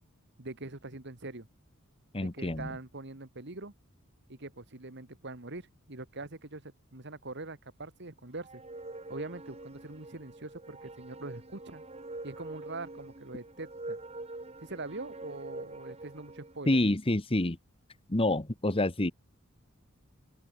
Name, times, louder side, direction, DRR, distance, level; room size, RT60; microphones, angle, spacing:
voice 1, 0.4-1.5 2.2-3.7 4.3-8.6 9.1-11.8 12.2-14.0 14.6-16.8, right 2 dB, 55° right, 2.2 m, -43 dB
voice 2, 2.1-2.7 16.7-17.6 18.1-19.1, left 1 dB, 25° left, 1.2 m, -27 dB
sound 1, 8.4-16.6, right 2 dB, 30° right, 1.5 m, -45 dB
open air
head